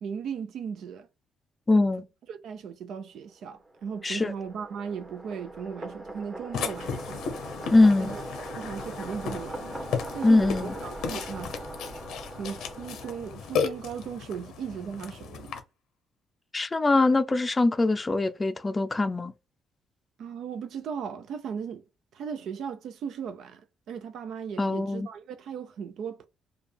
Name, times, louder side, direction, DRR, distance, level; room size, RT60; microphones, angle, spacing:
voice 1, 0.0-1.1 1.7-1.8 2.3-7.2 8.0-8.2 8.5-9.8 10.1-11.6 12.3-15.5 20.2-21.8 22.1-26.3, right 7 dB, 75° right, 0.5 m, -37 dB
voice 2, 1.7-2.0 4.0-4.3 7.7-8.1 10.2-10.7 16.5-19.3 24.6-25.1, left 2 dB, 25° left, 0.4 m, -22 dB
sound 1, 3.4-14.1, right 2 dB, 20° right, 1.0 m, -41 dB
Burping eructation, 6.5-15.6, left 6 dB, 85° left, 0.6 m, -35 dB
4.8 x 2.3 x 3.3 m
cardioid pair, 90°, 0 cm